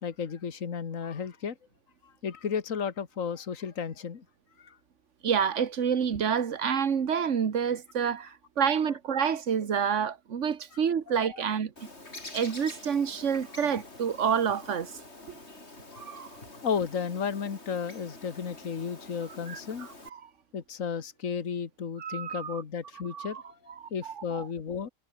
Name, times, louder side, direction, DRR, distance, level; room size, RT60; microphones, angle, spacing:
voice 1, 0.0-1.6 2.0-4.2 4.6-4.8 11.1-11.5 15.9-16.0 16.6-19.9 20.5-24.9, left 6 dB, 65° left, 2.0 m, -34 dB
voice 2, 5.2-11.7 12.3-14.9 16.0-16.4 19.5-20.2 22.0-22.6 23.1-23.4 23.8-24.5, right 7 dB, 60° right, 1.7 m, -28 dB
Bird, 11.8-20.1, left 2 dB, 50° left, 4.8 m, -47 dB
omnidirectional pair, 1.5 m